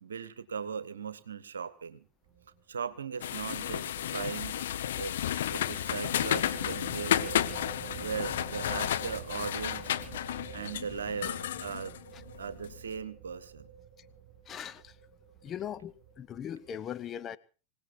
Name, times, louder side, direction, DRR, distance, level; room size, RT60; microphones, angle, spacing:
voice 1, 0.0-2.1 2.7-4.6 5.0-5.1 5.5-7.4 7.9-9.9 10.5-12.0 12.4-13.7, right 6 dB, 75° right, 1.1 m, -38 dB
sound 1, 2.2-2.5 2.8-2.9 5.4-16.7, right 6 dB, 45° right, 3.3 m, -47 dB
sound 2, 3.2-12.8, left 11 dB, 65° left, 0.9 m, -32 dB
voice 2, 14.4-15.0 15.4-17.4, left 9 dB, 30° left, 0.8 m, -40 dB
26.0 x 17.5 x 2.6 m
figure-of-eight pair, 90°, 0 cm